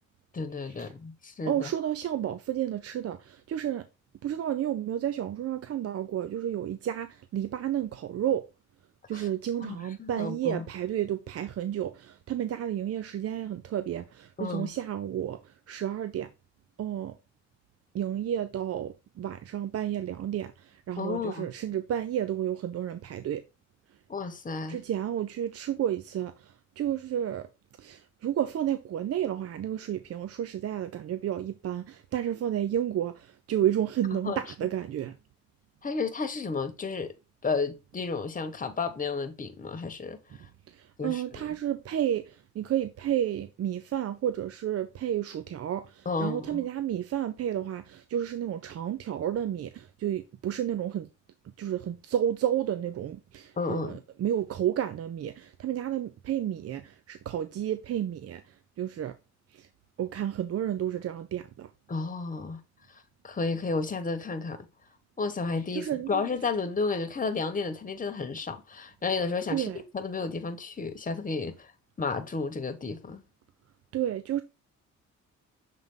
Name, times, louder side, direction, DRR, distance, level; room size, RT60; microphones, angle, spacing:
voice 1, 0.3-1.7 9.1-9.3 9.6-10.7 14.4-14.7 21.0-21.5 24.1-24.8 34.1-34.4 35.8-37.1 37.4-40.2 41.0-41.5 46.0-46.7 53.6-54.0 61.9-62.6 62.9-64.7 65.2-71.7 72.0-73.2, left 4 dB, 25° left, 1.2 m, -32 dB
voice 2, 1.4-3.9 4.2-8.4 9.1-16.3 16.8-17.2 17.9-23.4 24.7-27.5 27.8-35.1 40.7-51.1 51.6-58.4 58.8-59.1 59.5-59.7 60.0-61.7 65.7-66.2 69.5-69.8 73.9-74.4, right 10 dB, 50° right, 0.6 m, -31 dB
6.8 x 3.7 x 3.8 m
cardioid pair, 90°, 30 cm